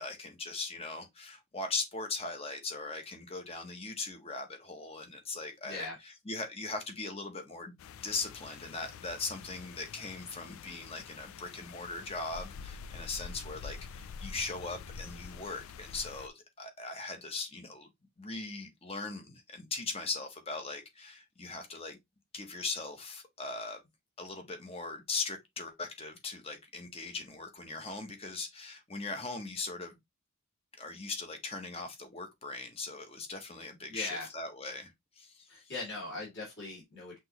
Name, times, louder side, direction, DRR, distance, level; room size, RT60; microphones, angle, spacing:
voice 1, 0.0-7.7 8.0-17.9 18.2-22.0 22.3-23.8 24.2-30.0 30.8-35.7, left 3 dB, 25° left, 0.9 m, -39 dB
voice 2, 5.6-6.0 33.9-34.3 35.5-37.2, left 2 dB, 50° left, 2.4 m, -40 dB
sound 1, 7.8-16.3, left 5 dB, 70° left, 0.4 m, -47 dB
6.0 x 3.0 x 2.9 m
head